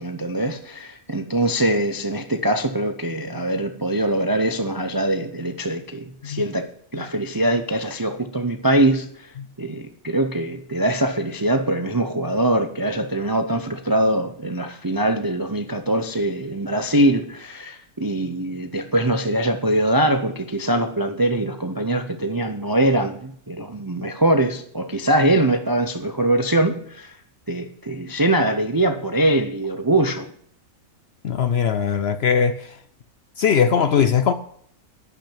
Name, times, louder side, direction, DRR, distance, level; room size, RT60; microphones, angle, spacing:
voice 1, 0.0-27.2 27.5-30.3, right 1 dB, 30° right, 0.4 m, -22 dB
voice 2, 31.2-32.7 33.4-34.3, left 7 dB, 60° left, 0.7 m, -20 dB
11.5 x 5.9 x 8.7 m
omnidirectional pair, 1.5 m